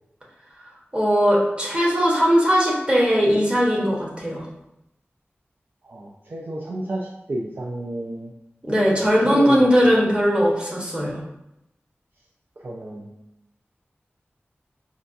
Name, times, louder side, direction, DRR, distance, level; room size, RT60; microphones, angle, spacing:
voice 1, 0.9-4.5 8.6-11.2, equal, 25° right, -4 dB, 1.1 m, -19 dB
voice 2, 5.8-8.3 8.9-9.7 12.6-13.1, right 1 dB, 50° right, -2 dB, 0.4 m, -32 dB
4.9 x 2.3 x 2.6 m, 0.85 s
wide cardioid pair, 65°, 4 cm